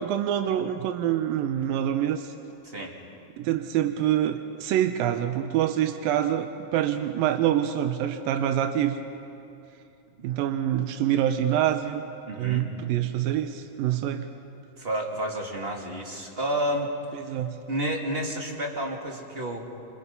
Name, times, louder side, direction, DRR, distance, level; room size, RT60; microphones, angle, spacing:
voice 1, 0.0-2.3 3.4-9.0 10.2-12.0 12.4-14.3 17.2-17.6, right 11 dB, 90° right, 7 dB, 2.6 m, -26 dB
voice 2, 12.3-12.7 14.8-16.9 17.7-19.7, right 1 dB, 20° right, 0 dB, 2.2 m, -30 dB
27.5 x 27.5 x 5.4 m, 2.7 s
omnidirectional pair, 4.0 m